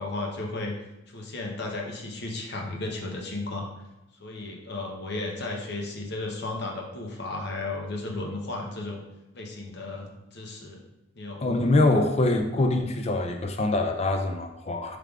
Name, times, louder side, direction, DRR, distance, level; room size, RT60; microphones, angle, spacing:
voice 1, 0.0-3.7 4.2-9.0 9.3-10.8 11.2-11.5, left 2 dB, 55° left, 1 dB, 0.7 m, -34 dB
voice 2, 11.4-15.0, left 2 dB, 30° left, 5 dB, 0.4 m, -24 dB
5.0 x 3.3 x 2.4 m, 0.96 s
head